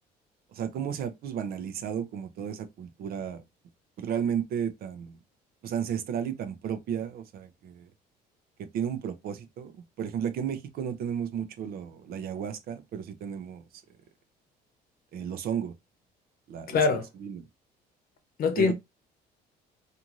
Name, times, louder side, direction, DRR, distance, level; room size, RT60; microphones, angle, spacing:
voice 1, 0.5-3.4 4.0-5.2 5.6-7.9 8.6-13.6 15.1-15.7 16.5-16.8 17.2-17.4 18.6-18.7, right 8 dB, 65° right, 0.6 m, -33 dB
voice 2, 16.7-17.1 18.4-18.7, left 4 dB, 60° left, 0.8 m, -23 dB
2.6 x 2.5 x 2.9 m
cardioid pair, 110°, 17 cm